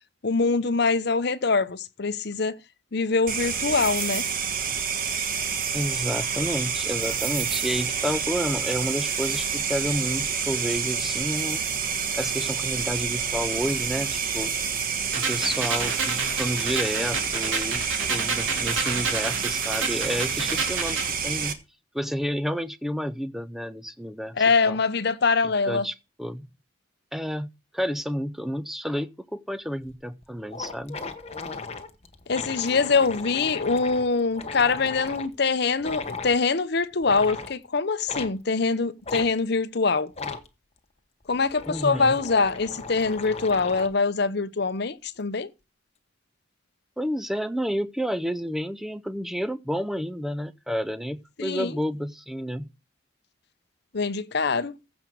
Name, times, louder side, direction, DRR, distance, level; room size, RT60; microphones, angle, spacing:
voice 1, 0.2-2.6 2.9-4.2 24.4-25.9 32.3-40.1 41.3-45.5 51.4-51.8 53.9-54.7, left 4 dB, 55° left, 0.8 m, -24 dB
sound 1, 3.3-21.5, right 6 dB, 45° right, 1.3 m, -28 dB
voice 2, 5.7-11.6 12.2-14.5 15.2-21.6 21.9-24.4 24.6-24.8 25.7-26.5 27.1-31.0 41.7-42.1 47.0-52.7, equal, ahead, 0.5 m, -30 dB
sound 2, 15.1-21.1, right 4 dB, 85° right, 2.9 m, -30 dB
sound 3, 29.8-29.9 30.2-30.3 30.5-35.3 35.8-36.4 37.0-37.5 38.1-38.3 39.0-39.3 40.1-40.5 41.2-44.0, left 4 dB, 30° left, 1.1 m, -37 dB
15.0 x 5.2 x 6.1 m
head